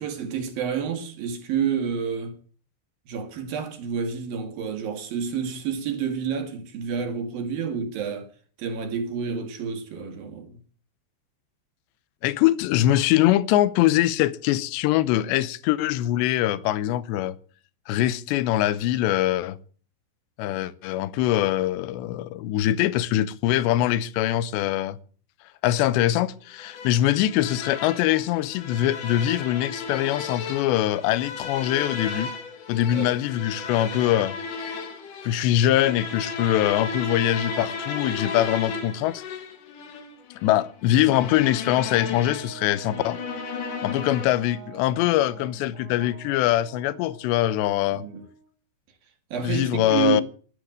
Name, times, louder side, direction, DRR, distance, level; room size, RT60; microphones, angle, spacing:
voice 1, 0.0-2.4 3.1-8.3 8.6-10.6 32.9-33.1 47.9-48.2 49.3-50.2, right 7 dB, 60° right, 3.4 m, -29 dB
voice 2, 12.2-17.4 17.9-19.6 20.4-25.0 25.6-32.3 32.7-34.4 35.2-39.2 40.4-43.2 43.8-48.0 49.4-50.2, left 13 dB, 80° left, 3.0 m, -23 dB
sound 1, 26.6-44.6, left 5 dB, 55° left, 2.9 m, -35 dB
Brass instrument, 41.8-48.5, right 7 dB, 80° right, 4.8 m, -45 dB
12.0 x 11.5 x 8.6 m
omnidirectional pair, 5.0 m